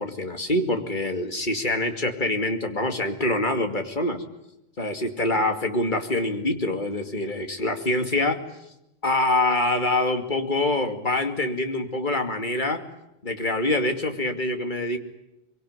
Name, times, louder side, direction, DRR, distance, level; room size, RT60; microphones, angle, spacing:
voice 1, 0.0-4.2 4.8-8.4 9.0-12.8 13.2-15.0, left 2 dB, 40° left, 5 dB, 2.6 m, -25 dB
23.5 x 23.5 x 9.7 m, 0.87 s
omnidirectional pair, 1.3 m